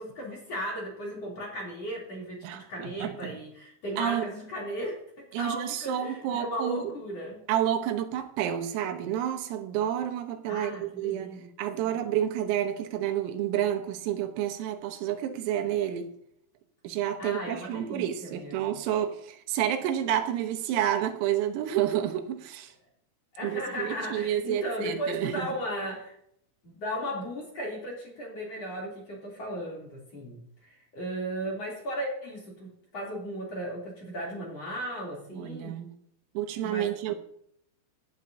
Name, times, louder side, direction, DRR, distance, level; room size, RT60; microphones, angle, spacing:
voice 1, 0.0-7.4 10.5-11.5 17.2-18.8 23.3-26.1 26.6-35.8 36.6-36.9, equal, 35° left, 3.3 m, -36 dB
voice 2, 2.4-3.4 4.0-4.3 5.3-6.9 7.5-11.3 11.6-16.1 16.8-22.7 23.4-25.5 35.3-35.9 36.4-37.2, right 11 dB, 90° right, 3.8 m, -30 dB
17.5 x 10.0 x 2.7 m
omnidirectional pair, 5.9 m